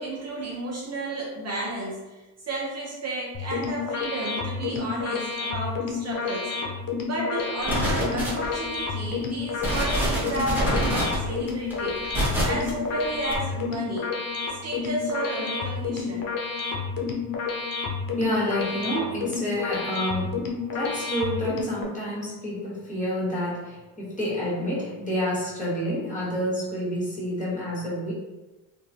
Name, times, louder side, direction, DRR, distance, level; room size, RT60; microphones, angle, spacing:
voice 1, 0.0-6.5 7.1-12.0 12.4-14.1 14.5-16.3, right 2 dB, 40° right, -3 dB, 0.5 m, -32 dB
sound 1, 3.3-21.8, left 5 dB, 55° left, 0.6 m, -30 dB
sound 2, 7.6-8.7 9.2-9.3 9.6-12.7 13.3-13.4, equal, 5° right, 0.9 m, -25 dB
voice 2, 18.2-20.4 20.7-28.1, equal, 20° left, -8 dB, 1.4 m, -29 dB
2.9 x 2.3 x 2.6 m, 1.1 s
cardioid pair, 90°, 41 cm